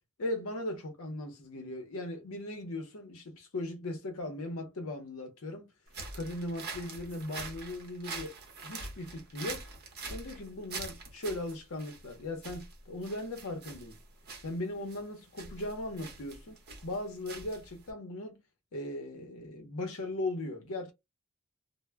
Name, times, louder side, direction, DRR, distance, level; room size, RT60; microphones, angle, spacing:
voice 1, 0.2-5.7 6.1-8.3 8.6-9.6 10.1-14.0 14.4-16.6 16.8-18.4 18.7-20.9, left 1 dB, 70° left, 0.7 m, -38 dB
sound 1, 5.9-17.9, right 3 dB, 50° right, 0.8 m, -44 dB
2.1 x 2.0 x 3.3 m
head